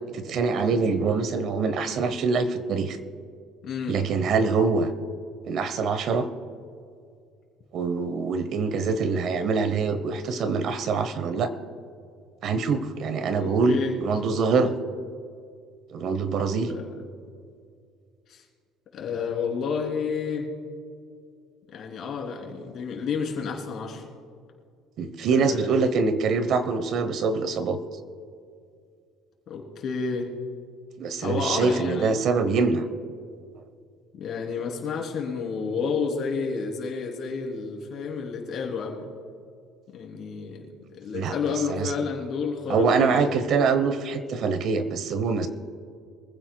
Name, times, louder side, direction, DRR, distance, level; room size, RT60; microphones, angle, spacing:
voice 1, 0.0-3.0 3.9-4.9 5.5-6.3 7.7-11.5 12.4-14.7 15.9-16.7 25.0-27.8 31.0-32.8 41.1-41.4 41.7-41.9 42.7-45.5, right 4 dB, 50° right, 11 dB, 0.9 m, -24 dB
voice 2, 3.6-4.0 13.4-13.9 16.7-17.1 18.3-18.4 18.9-20.5 21.7-24.0 25.3-25.7 29.5-30.3 31.2-32.1 34.2-39.1 39.9-40.7 40.9-43.2 45.4-45.5, left 5 dB, 45° left, 0 dB, 3.2 m, -30 dB
24.5 x 15.5 x 2.3 m, 2.3 s
cardioid pair, 155°, 0 cm